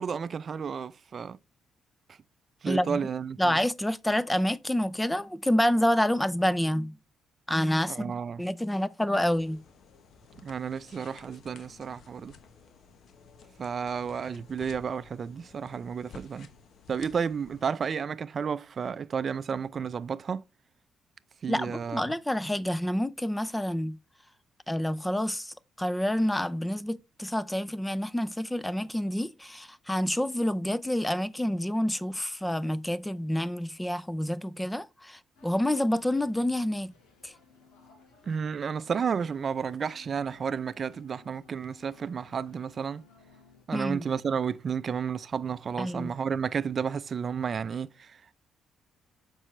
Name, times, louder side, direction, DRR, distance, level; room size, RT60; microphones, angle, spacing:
voice 1, 0.0-1.4 2.6-3.6 7.9-8.4 10.4-12.3 13.6-16.5 16.9-20.4 21.4-22.1 38.3-43.0 43.7-48.4, right 6 dB, 45° right, 0.5 m, -32 dB
voice 2, 2.7-3.0 3.4-7.0 7.5-9.6 21.5-24.0 24.7-36.9 37.2-37.3 43.7-44.0 45.8-46.1, left 1 dB, 10° left, 0.6 m, -28 dB
sound 1, 9.2-17.7, left 5 dB, 65° left, 1.1 m, -53 dB
sound 2, 35.3-43.6, left 4 dB, 90° left, 3.0 m, -58 dB
7.4 x 5.5 x 3.2 m
cardioid pair, 90°, 0 cm